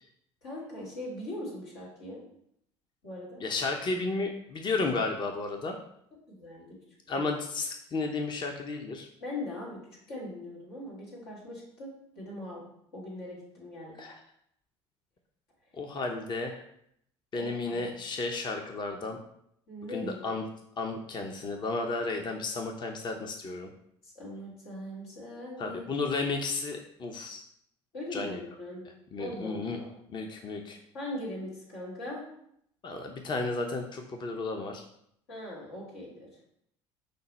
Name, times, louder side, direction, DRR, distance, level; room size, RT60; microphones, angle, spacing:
voice 1, 0.4-2.2 3.0-3.4 6.3-6.7 7.1-7.3 9.2-9.8 10.1-12.6 12.9-14.0 17.3-17.9 19.7-20.3 24.0-25.9 27.9-28.8 29.2-29.9 30.9-32.3 35.3-36.3, left 1 dB, 85° left, -5 dB, 1.8 m, -40 dB
voice 2, 3.4-5.8 7.1-9.1 14.0-14.2 15.7-16.6 17.3-19.2 19.9-20.4 20.8-23.7 25.6-27.4 28.1-28.4 29.1-29.8 30.1-30.8 32.8-34.8, left 3 dB, 35° left, 4 dB, 0.6 m, -33 dB
5.2 x 2.1 x 4.1 m, 0.72 s
hypercardioid pair, 70°, 14 cm